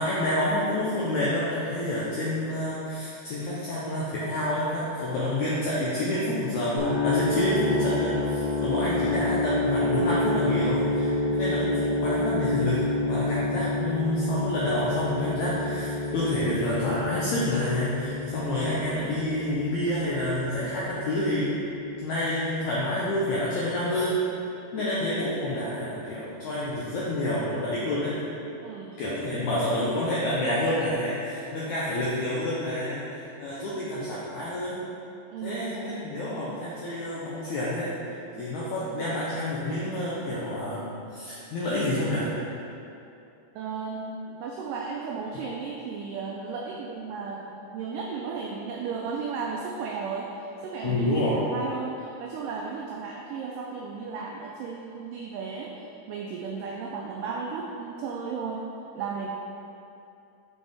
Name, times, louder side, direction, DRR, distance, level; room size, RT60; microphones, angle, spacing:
voice 1, 0.0-21.5 22.0-24.2 24.7-28.2 29.0-34.8 35.4-37.9 38.4-42.3 50.8-51.4, left 1 dB, 85° left, -7 dB, 1.6 m, -28 dB
sound 1, 6.8-22.7, left 2 dB, 75° right, 1.3 m, -29 dB
voice 2, 28.6-29.0 35.3-35.6 38.4-38.5 43.6-50.3 50.6-51.0 51.3-58.7 59.0-59.3, right 5 dB, 90° right, -1 dB, 1.8 m, -35 dB
6.3 x 5.2 x 3.4 m, 2.7 s
omnidirectional pair, 4.3 m